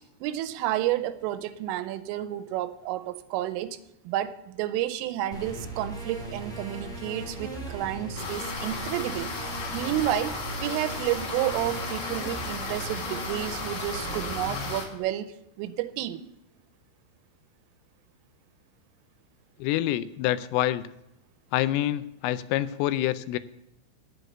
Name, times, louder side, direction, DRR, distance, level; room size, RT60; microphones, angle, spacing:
voice 1, 0.2-3.8 4.0-9.3 9.7-16.2, right 13 dB, 85° right, 3.2 m, -31 dB
sound 1, 5.3-14.7, right 2 dB, ahead, 2.1 m, -38 dB
sound 2, 8.2-14.9, left 4 dB, 50° left, 3.1 m, -35 dB
voice 2, 19.6-20.8 21.5-23.4, left 14 dB, 85° left, 3.0 m, -26 dB
9.7 x 7.9 x 8.0 m
omnidirectional pair, 5.9 m